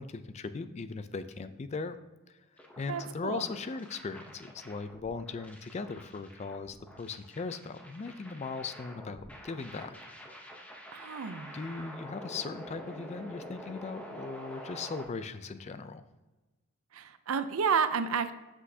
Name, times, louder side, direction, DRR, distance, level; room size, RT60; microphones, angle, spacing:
voice 1, 0.0-2.0 2.8-10.0 11.5-16.0, left 4 dB, 30° left, 12 dB, 0.3 m, -38 dB
sound 1, 2.6-15.0, equal, 5° left, 0.7 m, -47 dB
voice 2, 2.9-3.5 10.9-11.6 16.9-18.3, right 6 dB, 80° right, 11 dB, 0.5 m, -31 dB
7.4 x 6.2 x 2.7 m, 1.1 s
head